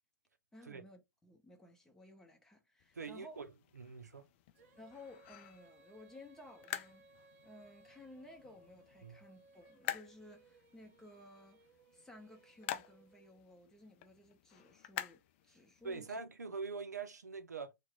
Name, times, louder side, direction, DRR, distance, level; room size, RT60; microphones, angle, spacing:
voice 1, 0.5-3.4 4.8-7.1 7.4-11.6 11.9-16.2, left 1 dB, 5° left, 0.8 m, -57 dB
sound 1, 2.8-16.0, left 12 dB, 40° left, 0.3 m, -49 dB
voice 2, 2.9-4.3 9.0-9.2 15.8-17.7, right 4 dB, 85° right, 0.5 m, -44 dB
Female singing, 4.5-13.7, right 3 dB, 50° right, 0.7 m, -65 dB
2.9 x 2.2 x 3.5 m
figure-of-eight pair, 115°, 9 cm